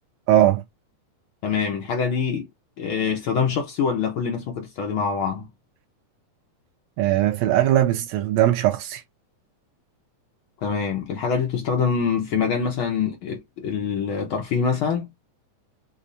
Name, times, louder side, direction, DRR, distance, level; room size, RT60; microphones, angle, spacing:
voice 1, 0.3-0.6 7.0-9.0, right 13 dB, 80° right, 1.6 m, -19 dB
voice 2, 1.4-2.5 2.8-5.5 10.6-15.1, left 6 dB, 85° left, 1.1 m, -25 dB
5.2 x 2.1 x 2.6 m
omnidirectional pair, 3.6 m